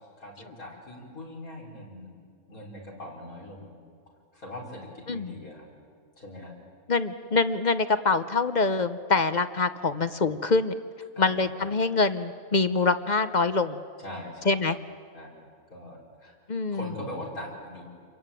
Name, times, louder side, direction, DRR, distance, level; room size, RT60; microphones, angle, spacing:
voice 1, 0.2-2.1 2.5-3.7 4.3-5.6 6.2-6.5 11.2-11.5 14.0-14.5 15.1-15.3 15.7-16.3 16.7-17.8, left 1 dB, 90° left, -2 dB, 5.9 m, -41 dB
voice 2, 6.9-10.7 11.2-13.8 14.5-14.8 16.5-16.9, left 3 dB, 40° left, 11 dB, 0.7 m, -25 dB
28.0 x 23.0 x 9.1 m, 2.1 s
omnidirectional pair, 1.5 m